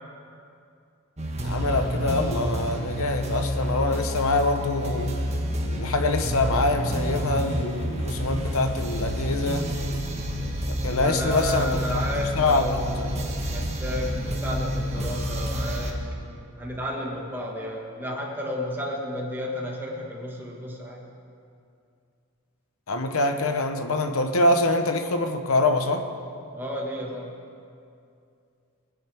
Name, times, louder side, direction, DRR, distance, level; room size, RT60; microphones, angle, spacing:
sound 1, 1.2-15.9, equal, 30° right, 1.4 m, -29 dB
voice 1, 1.4-5.1 5.7-9.7 10.8-12.0 12.4-12.7 13.0-13.1 22.9-26.1, left 2 dB, 75° left, 7 dB, 0.9 m, -25 dB
voice 2, 11.0-16.0 16.3-21.1 26.5-27.4, equal, 10° right, -2 dB, 1.6 m, -32 dB
sound 2, 14.9-17.0, equal, 55° left, 1.8 m, -41 dB
20.0 x 10.5 x 3.5 m, 2.4 s
head